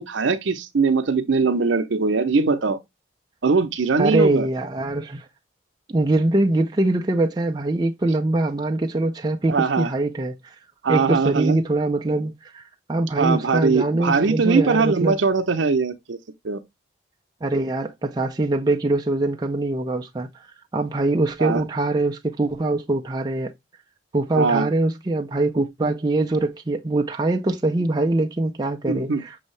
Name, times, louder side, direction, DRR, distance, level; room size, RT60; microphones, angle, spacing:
voice 1, 0.0-2.8 3.4-4.5 9.5-9.9 10.8-11.6 13.2-16.2 16.4-16.6 21.4-21.6 24.3-24.7 28.9-29.2, right 4 dB, 85° right, 0.6 m, -21 dB
voice 2, 4.0-5.3 5.9-10.5 10.9-12.6 12.9-15.2 17.4-20.5 20.7-23.5 24.1-29.5, right 2 dB, 20° right, 0.4 m, -23 dB
6.2 x 2.7 x 3.1 m
head